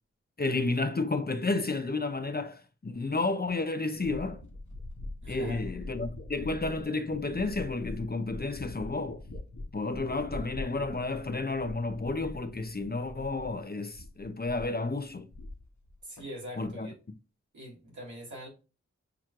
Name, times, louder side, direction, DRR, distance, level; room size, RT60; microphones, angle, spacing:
voice 1, 0.4-4.4 5.3-9.2 9.7-15.3 16.6-16.9, left 3 dB, 35° left, 0.6 m, -31 dB
sound 1, 3.9-13.6 13.9-14.8 15.1-15.9 16.2-16.7, left 2 dB, 80° left, 1.0 m, -43 dB
voice 2, 5.2-5.6 16.0-16.9 17.5-18.5, equal, 80° right, 1.9 m, -43 dB
5.8 x 3.1 x 2.4 m
wide cardioid pair, 50°, 29 cm